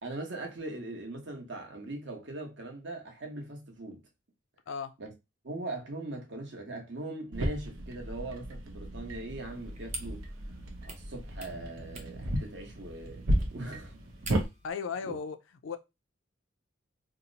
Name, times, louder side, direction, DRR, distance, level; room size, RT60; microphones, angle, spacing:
voice 1, 0.0-4.0 5.0-5.1 5.4-10.2 10.8-13.2 13.5-14.0 15.0-15.2, right 2 dB, 60° right, 1.0 m, -40 dB
sound 1, 7.3-14.5, right 1 dB, 85° right, 0.7 m, -34 dB
sound 2, 9.3-14.7, right 3 dB, 35° right, 0.6 m, -48 dB
voice 2, 14.6-15.4 15.6-15.8, left 6 dB, 70° left, 0.4 m, -35 dB
2.8 x 2.0 x 3.8 m
head